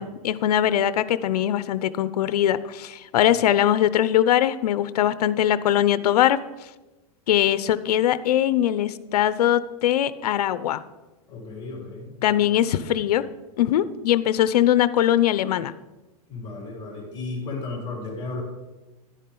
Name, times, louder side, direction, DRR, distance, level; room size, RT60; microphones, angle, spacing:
voice 1, 0.0-6.4 7.3-10.8 12.2-13.2 13.6-15.7, left 11 dB, 85° left, 15 dB, 0.6 m, -21 dB
voice 2, 11.3-12.8 16.3-18.4, left 3 dB, 25° left, -2 dB, 4.4 m, -35 dB
11.0 x 10.0 x 3.8 m, 1.1 s
supercardioid pair, 150°, 20 cm